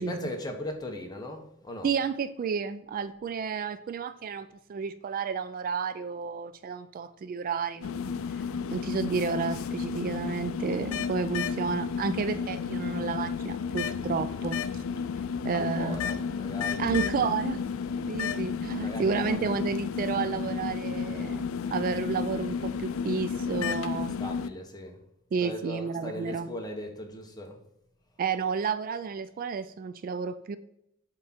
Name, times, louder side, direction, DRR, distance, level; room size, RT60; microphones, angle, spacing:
voice 1, 0.0-2.0 13.6-13.8 15.5-17.1 17.8-18.1 18.5-19.6 24.2-25.0 25.4-27.6, left 1 dB, 20° left, 1.1 m, -39 dB
voice 2, 1.8-8.2 8.7-14.8 15.4-16.0 16.8-17.6 18.1-24.1 25.3-26.5 28.2-30.6, right 5 dB, 45° right, 0.3 m, -31 dB
sound 1, 7.8-24.5, left 6 dB, 80° left, 0.4 m, -32 dB
7.6 x 3.7 x 4.3 m
head